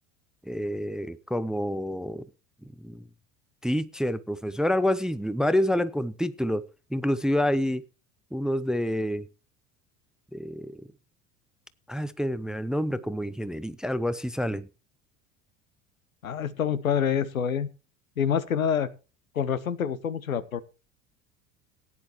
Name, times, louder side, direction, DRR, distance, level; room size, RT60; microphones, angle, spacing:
voice 1, 0.5-2.2 2.6-3.0 3.6-7.8 8.3-9.3 10.3-10.8 11.9-14.7, left 1 dB, ahead, 0.5 m, -28 dB
voice 2, 16.2-17.7 18.2-18.9 19.3-20.6, left 8 dB, 85° left, 0.9 m, -26 dB
16.5 x 9.9 x 3.1 m
figure-of-eight pair, 70°, 40 cm